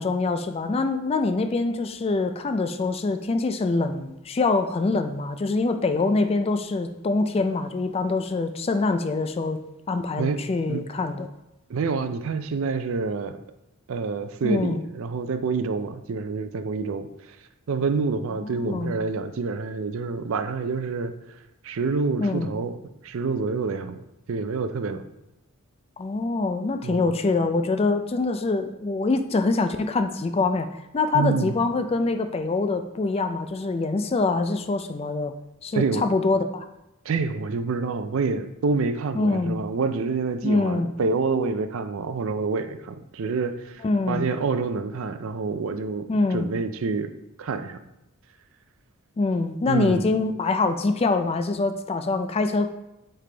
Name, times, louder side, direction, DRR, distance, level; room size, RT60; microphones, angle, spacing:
voice 1, 0.0-9.6 9.9-11.3 14.4-14.8 18.4-18.9 22.2-22.5 26.0-30.7 30.9-35.3 35.6-36.7 39.1-39.6 40.4-40.9 43.8-44.2 46.1-46.5 49.2-52.7, left 3 dB, 25° left, 8 dB, 0.3 m, -24 dB
voice 2, 11.7-13.4 13.9-17.4 17.7-21.2 21.6-22.8 23.0-24.0 24.3-25.0 26.8-27.1 31.1-31.5 35.7-36.0 37.1-47.1 47.4-47.8 49.7-50.1, right 4 dB, 60° right, 10 dB, 0.4 m, -27 dB
8.7 x 3.4 x 3.3 m, 0.90 s
head